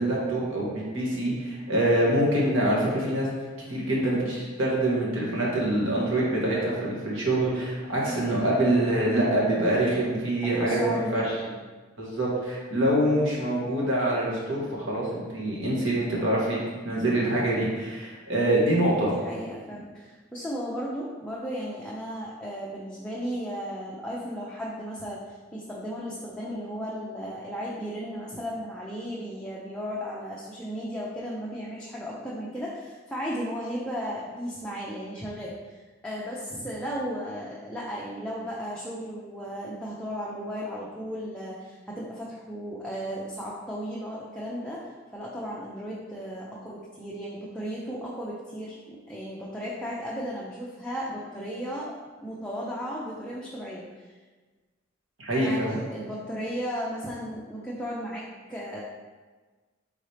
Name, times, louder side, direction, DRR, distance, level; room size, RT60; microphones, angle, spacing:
voice 1, 0.0-3.3 3.7-11.3 12.0-16.6 16.8-19.1 55.2-55.7, right 1 dB, 70° right, -5 dB, 1.3 m, -25 dB
voice 2, 8.0-8.4 10.4-11.6 18.9-44.8 45.1-51.9 52.2-54.1 55.3-58.8, equal, 5° left, -6 dB, 0.5 m, -35 dB
4.3 x 3.8 x 3.2 m, 1.3 s
head